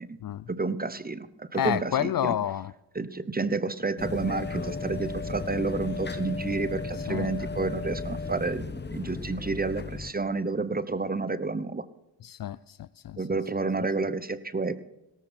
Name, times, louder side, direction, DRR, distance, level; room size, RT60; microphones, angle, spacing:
voice 1, 0.5-2.3 2.9-8.6 8.9-11.8 13.2-14.8, right 3 dB, 20° right, 16 dB, 1.0 m, -30 dB
voice 2, 1.5-2.7 7.1-7.3 12.2-13.2, left 10 dB, 50° left, 20 dB, 0.5 m, -29 dB
sound 1, 4.0-10.1, left 4 dB, 20° left, 1.1 m, -35 dB
17.5 x 13.5 x 4.5 m, 0.91 s
cardioid pair, 65°, 48 cm